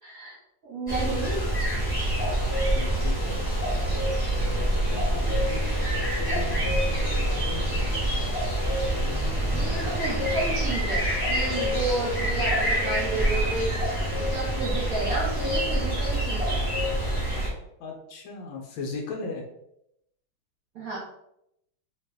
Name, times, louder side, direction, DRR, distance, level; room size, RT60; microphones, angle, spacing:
voice 1, 0.0-0.4 0.6-1.4 9.5-16.6 20.7-21.0, right 2 dB, 55° right, -5 dB, 1.1 m, -32 dB
sound 1, 0.9-17.5, right 1 dB, 15° left, 1.1 m, -26 dB
voice 2, 2.7-3.4 4.6-9.6 12.4-12.6 17.8-19.4, left 3 dB, 75° left, 1 dB, 1.3 m, -39 dB
2.9 x 2.8 x 3.3 m, 0.79 s
omnidirectional pair, 2.3 m